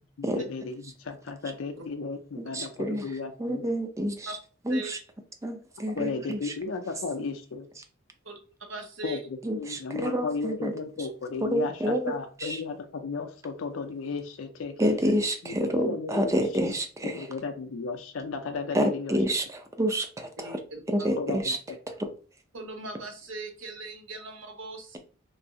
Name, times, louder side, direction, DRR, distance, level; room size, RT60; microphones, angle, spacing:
voice 1, 0.2-3.6 6.0-7.7 9.0-14.8 15.4-16.3 16.6-16.7 17.0-19.2 21.2-21.8, left 4 dB, 80° left, 6 dB, 0.4 m, -34 dB
voice 2, 2.4-3.1 3.4-4.3 4.7-5.0 5.4-6.5 9.4-10.7 11.4-12.1 12.4-12.6 14.8-17.3 18.7-20.6 20.9-21.6 22.0-22.1, equal, 15° right, 5 dB, 0.4 m, -28 dB
voice 3, 8.7-9.2 20.4-21.1 22.5-25.0, right 2 dB, 75° right, 3 dB, 0.9 m, -39 dB
3.1 x 2.7 x 2.7 m, 0.38 s
head